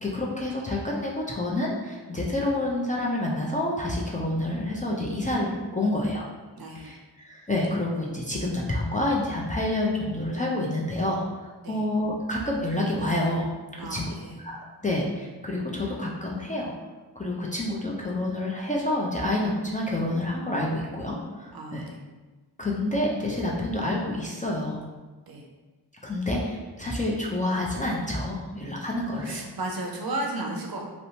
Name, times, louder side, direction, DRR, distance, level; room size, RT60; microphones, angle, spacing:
voice 1, 0.0-6.3 6.8-13.5 13.8-16.7 17.2-21.8 22.6-24.8 26.0-29.4, left 1 dB, 20° left, -4 dB, 0.4 m, -28 dB
voice 2, 6.6-7.0 11.6-11.9 13.8-14.4 21.5-22.0 25.3-25.5 29.0-30.9, right 2 dB, 55° right, 1 dB, 0.5 m, -34 dB
2.9 x 2.1 x 2.7 m, 1.3 s
wide cardioid pair, 60°, 43 cm